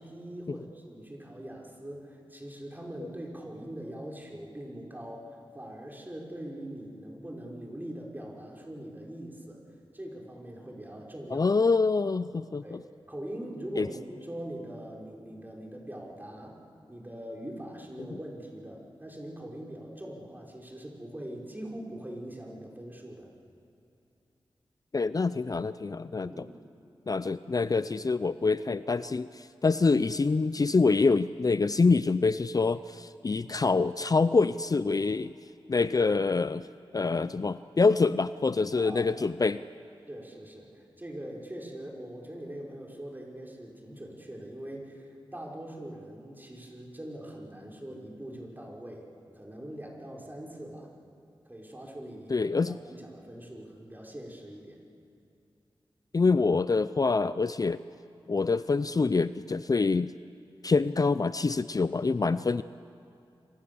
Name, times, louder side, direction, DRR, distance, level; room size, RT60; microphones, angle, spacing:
voice 1, 0.0-5.2 5.5-9.6 9.9-11.5 12.6-12.8 13.1-16.6 16.9-23.3 26.2-26.5 38.8-39.3 40.1-49.0 49.4-50.9 51.5-54.8, right 1 dB, 20° right, -1 dB, 5.3 m, -42 dB
voice 2, 11.3-12.8 13.8-13.9 24.9-26.4 27.1-35.3 35.7-36.7 36.9-39.6 52.3-52.8 56.1-57.8 58.3-60.1 60.6-62.6, left 4 dB, 40° left, 14 dB, 0.5 m, -26 dB
27.0 x 25.5 x 7.0 m, 2.6 s
wide cardioid pair, 60°, 9 cm